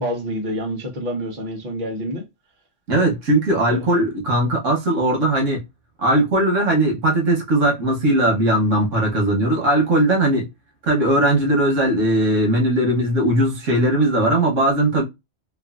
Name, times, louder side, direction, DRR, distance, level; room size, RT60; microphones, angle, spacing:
voice 1, 0.0-2.2 3.7-3.8, equal, 45° right, 1.0 m, -27 dB
voice 2, 2.9-5.6 6.0-10.5 10.8-15.0, right 1 dB, 90° right, 1.3 m, -19 dB
3.0 x 2.3 x 2.4 m
omnidirectional pair, 1.2 m